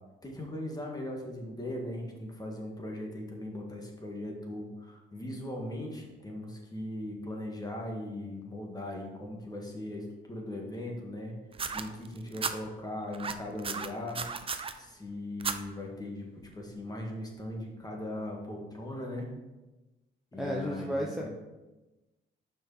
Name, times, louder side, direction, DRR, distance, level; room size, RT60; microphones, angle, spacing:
voice 1, 0.2-11.3 11.7-14.2 14.7-19.3 20.3-21.3, left 1 dB, 20° left, 0 dB, 1.7 m, -39 dB
sound 1, 11.5-12.5 13.1-14.7 15.4-15.6 16.5-16.6, right 5 dB, 30° right, 0.5 m, -34 dB
voice 2, 20.4-21.3, equal, ahead, -3 dB, 0.9 m, -32 dB
5.9 x 4.9 x 4.9 m, 1.1 s
cardioid pair, 90°, 20 cm